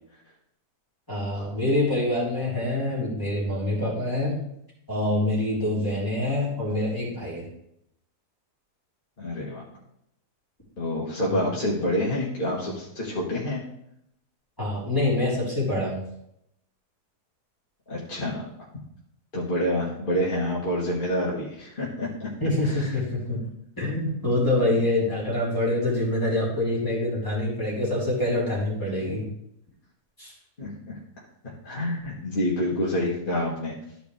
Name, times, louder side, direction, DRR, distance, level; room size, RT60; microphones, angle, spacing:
voice 1, 1.1-4.4 4.9-7.5 11.3-11.5 14.6-16.0 22.4-23.4 23.8-29.3 30.2-30.3, left 1 dB, 15° left, -7 dB, 3.2 m, -25 dB
voice 2, 9.2-9.6 10.8-13.6 17.9-18.5 19.3-22.3 22.6-22.9 24.6-24.8 30.6-33.7, left 1 dB, 35° left, -6 dB, 1.5 m, -28 dB
12.5 x 5.0 x 3.3 m, 0.76 s
omnidirectional pair, 1.7 m